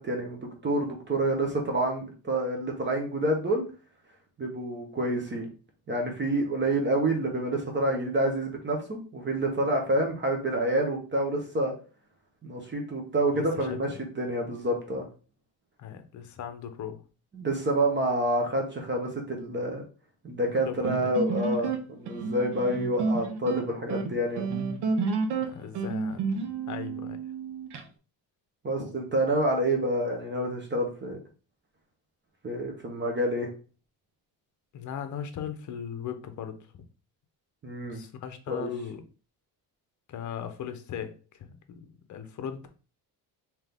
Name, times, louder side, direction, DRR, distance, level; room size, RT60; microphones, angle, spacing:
voice 1, 0.0-3.6 4.4-5.5 5.9-11.7 12.4-15.0 17.3-19.8 20.2-24.5 28.6-31.2 32.4-33.5 37.6-38.0 38.5-38.7, right 1 dB, 30° right, 2 dB, 0.9 m, -28 dB
voice 2, 13.3-14.0 15.8-17.0 20.4-21.1 21.6-21.7 25.4-27.2 34.7-36.6 37.9-39.0 40.1-42.7, left 8 dB, 50° left, 8 dB, 0.7 m, -38 dB
sound 1, 20.8-27.8, right 4 dB, 85° right, 0.8 m, -30 dB
3.6 x 2.9 x 3.4 m, 0.35 s
cardioid pair, 120°, 39 cm